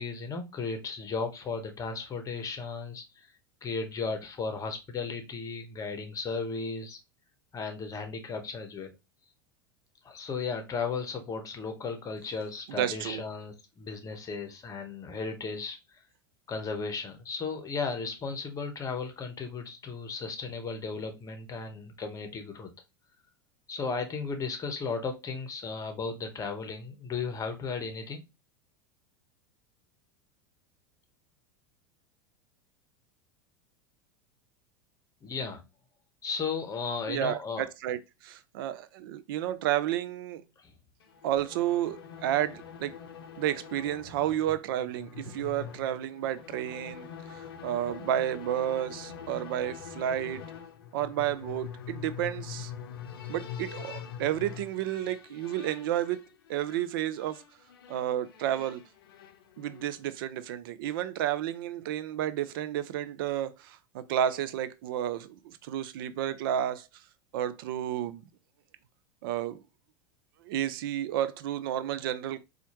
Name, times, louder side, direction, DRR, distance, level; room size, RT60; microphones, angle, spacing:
voice 1, 0.0-3.3 3.6-7.0 7.5-8.9 10.0-16.0 16.5-22.7 23.7-28.2 35.2-35.6 36.2-37.6 40.6-40.7, left 4 dB, 25° left, 0.9 m, -35 dB
voice 2, 12.7-13.2 37.1-40.4 41.2-43.0 43.4-50.4 50.9-52.7 53.3-57.4 57.9-58.8 59.6-66.9 67.3-68.2 69.2-69.6 70.4-72.4, right 11 dB, 65° right, 0.4 m, -31 dB
sound 1, 41.0-60.1, left 8 dB, 75° left, 0.6 m, -44 dB
4.2 x 2.4 x 2.9 m
hypercardioid pair, 90°, 13 cm